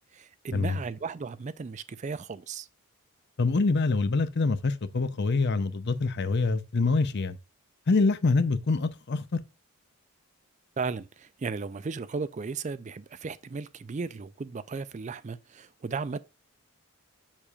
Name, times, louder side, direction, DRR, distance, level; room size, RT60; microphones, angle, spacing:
voice 1, 0.1-2.7 10.8-16.2, right 4 dB, 30° right, 0.3 m, -35 dB
voice 2, 3.4-7.4 7.9-9.4, left 3 dB, 50° left, 0.5 m, -25 dB
7.3 x 6.6 x 2.3 m
head